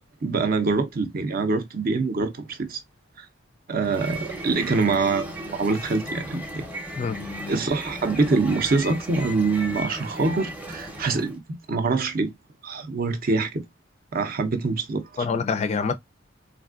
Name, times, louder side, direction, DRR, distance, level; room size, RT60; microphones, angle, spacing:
voice 1, 0.2-2.8 3.2-3.3 3.7-6.6 7.5-12.3 12.6-13.6 14.1-15.2, right 3 dB, 50° right, 0.6 m, -25 dB
sound 1, 3.7-11.4, right 1 dB, 10° right, 0.7 m, -36 dB
voice 2, 7.0-7.5 15.2-15.9, left 5 dB, 35° left, 0.4 m, -26 dB
3.5 x 2.5 x 2.3 m
head